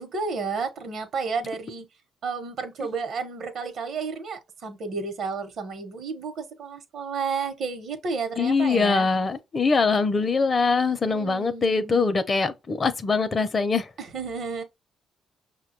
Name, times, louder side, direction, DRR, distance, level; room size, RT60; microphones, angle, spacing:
voice 1, 0.0-1.9 2.2-9.1 11.0-12.1 14.0-14.6, right 5 dB, 65° right, 0.9 m, -32 dB
voice 2, 8.4-13.9, left 4 dB, 35° left, 0.5 m, -23 dB
5.6 x 2.2 x 2.8 m
cardioid pair, 90°, 0 cm